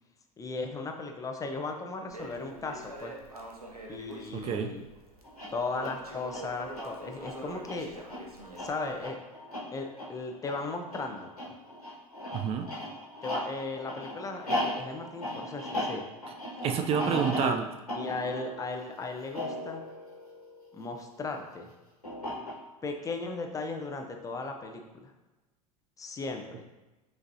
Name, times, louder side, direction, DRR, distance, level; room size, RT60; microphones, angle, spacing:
voice 1, 0.4-3.2 3.9-4.9 5.5-7.9 8.6-9.2 9.7-11.5 13.2-16.1 17.0-17.5 17.9-19.8 20.7-21.7 22.8-25.1 26.0-26.6, left 3 dB, 20° left, 4 dB, 0.6 m, -36 dB
Crackle, 2.1-9.0, right 1 dB, 85° right, 0.7 m, -45 dB
voice 2, 4.3-4.7 12.3-12.7 16.6-17.7, right 7 dB, 30° right, 6 dB, 0.4 m, -28 dB
sound 1, 5.2-21.0 22.0-22.9, left 1 dB, 90° left, 1.5 m, -37 dB
5.8 x 3.2 x 2.7 m, 1.1 s
figure-of-eight pair, 75°, 19 cm